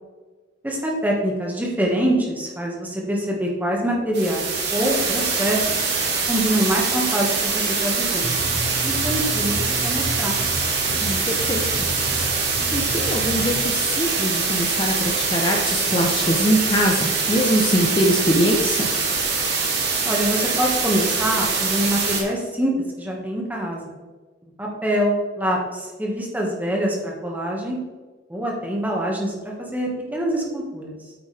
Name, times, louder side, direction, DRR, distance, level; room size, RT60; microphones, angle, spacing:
voice 1, 0.6-5.7 6.3-8.5 8.8-10.4 20.1-22.7 23.0-23.9 24.6-27.8 28.3-31.0, equal, 10° right, -1 dB, 1.8 m, -25 dB
sound 1, 4.1-22.2, right 4 dB, 60° right, 2.6 m, -23 dB
sound 2, 8.2-13.6, equal, 30° right, 1.4 m, -32 dB
voice 2, 11.0-11.6 12.7-18.9, equal, 25° left, 1 dB, 0.9 m, -22 dB
8.7 x 8.7 x 3.5 m, 1.3 s
head